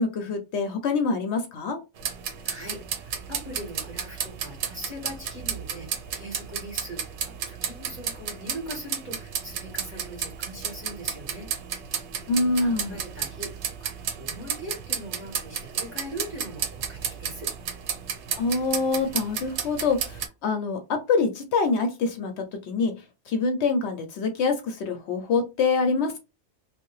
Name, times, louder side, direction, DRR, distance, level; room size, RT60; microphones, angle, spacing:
voice 1, 0.0-1.8 12.3-13.0 18.4-20.8 21.1-22.9 23.3-26.2, left 4 dB, 75° left, 6 dB, 0.8 m, -25 dB
sound 1, 2.0-20.3, right 7 dB, 75° right, 0.9 m, -33 dB
voice 2, 2.4-11.5 12.6-13.9 14.2-17.5, equal, 10° right, -3 dB, 1.3 m, -40 dB
2.6 x 2.2 x 3.0 m, 0.27 s
omnidirectional pair, 1.2 m